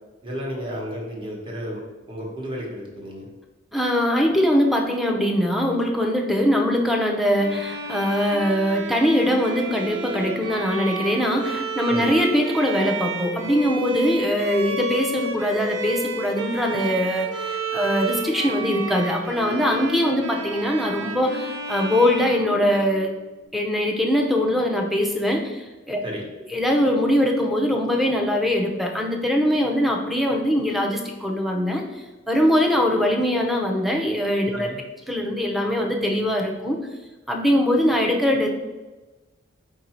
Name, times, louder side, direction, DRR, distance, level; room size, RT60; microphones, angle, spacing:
voice 1, 0.2-1.8 2.1-3.3 11.9-12.1 26.0-26.3 34.5-34.8, equal, 25° right, -2 dB, 1.0 m, -32 dB
voice 2, 3.7-23.1 23.5-26.0 26.5-34.7 35.1-36.8 37.3-38.5, equal, ahead, 0 dB, 0.5 m, -22 dB
Bowed string instrument, 7.4-23.2, right 3 dB, 65° right, 0.5 m, -31 dB
4.6 x 2.6 x 4.3 m, 1.2 s
head